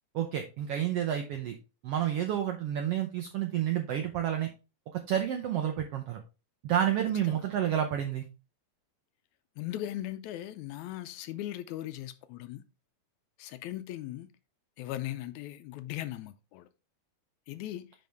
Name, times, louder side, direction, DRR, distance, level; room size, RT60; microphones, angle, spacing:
voice 1, 0.1-1.6 1.8-4.5 4.9-6.2 6.6-8.2, right 10 dB, 80° right, 1.3 m, -30 dB
voice 2, 9.6-12.6 13.4-14.3 14.8-16.7 17.5-17.9, left 13 dB, 80° left, 1.8 m, -38 dB
9.4 x 4.2 x 3.4 m
omnidirectional pair, 3.6 m